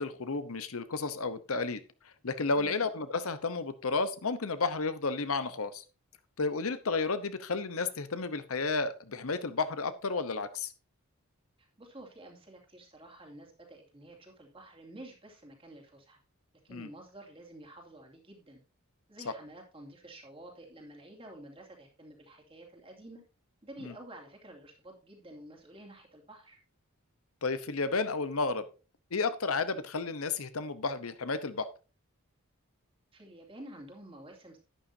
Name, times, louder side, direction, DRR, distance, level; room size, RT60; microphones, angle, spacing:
voice 1, 0.0-1.8 2.0-5.8 6.4-10.7 16.7-16.9 23.8-23.9 27.4-28.6 29.1-31.7, left 4 dB, 75° left, 12 dB, 0.9 m, -32 dB
voice 2, 11.6-16.2 16.6-18.6 19.1-23.2 23.6-26.6 33.1-34.6, right 1 dB, 25° right, 1 dB, 2.5 m, -50 dB
11.0 x 10.0 x 2.7 m, 0.33 s
head